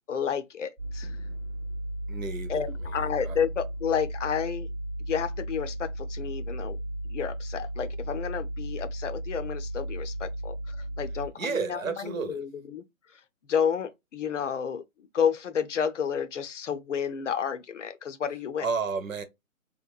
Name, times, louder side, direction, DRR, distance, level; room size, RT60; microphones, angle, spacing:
voice 1, 0.1-1.2 2.5-4.7 5.1-6.8 7.1-11.8 12.0-12.8 13.1-13.2 13.5-14.8 15.1-18.7, left 7 dB, 60° left, 0.5 m, -31 dB
sound 1, 0.8-11.3, right 1 dB, ahead, 0.5 m, -35 dB
voice 2, 2.1-3.4 11.4-12.4 18.6-19.2, right 5 dB, 70° right, 0.8 m, -32 dB
2.9 x 2.1 x 2.3 m
hypercardioid pair, 150°, 42 cm